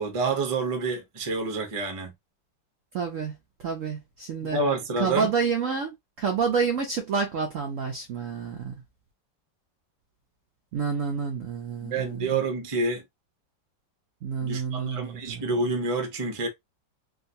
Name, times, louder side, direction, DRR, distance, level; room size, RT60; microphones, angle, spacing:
voice 1, 0.0-2.1 4.4-5.3 11.8-13.0 14.4-16.5, right 3 dB, 50° right, 0.4 m, -28 dB
voice 2, 2.9-3.3 3.6-4.6 5.0-8.7 10.7-12.4 14.2-15.4, right 6 dB, 85° right, 0.6 m, -29 dB
3.6 x 2.4 x 2.6 m
omnidirectional pair, 2.1 m